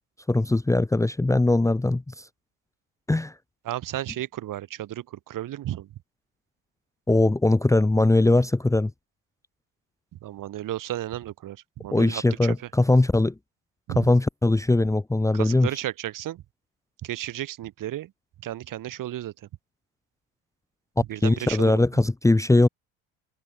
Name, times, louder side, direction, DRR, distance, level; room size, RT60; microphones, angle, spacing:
voice 1, 0.3-2.3 3.1-3.3 7.1-8.9 11.9-13.3 14.0-15.7 21.2-22.7, left 2 dB, 10° left, 1.0 m, -21 dB
voice 2, 3.6-5.9 10.1-12.7 13.9-14.1 15.3-16.4 17.0-18.1 18.4-19.5 21.0-21.8, right 13 dB, 55° right, 3.8 m, -33 dB
hypercardioid pair, 65°, 39 cm